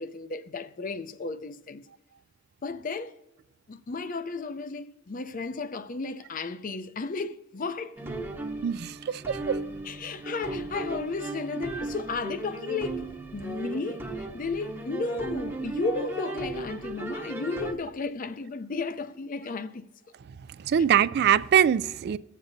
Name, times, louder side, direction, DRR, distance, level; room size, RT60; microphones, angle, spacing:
voice 1, 0.0-1.8 2.6-3.2 3.7-8.0 9.8-13.0 13.3-19.9, left 3 dB, 40° left, 0.5 m, -34 dB
sound 1, 8.0-17.7, right 2 dB, 10° right, 0.7 m, -36 dB
voice 2, 8.6-9.6 20.6-22.2, right 9 dB, 55° right, 0.3 m, -23 dB
21.5 x 7.3 x 2.6 m
head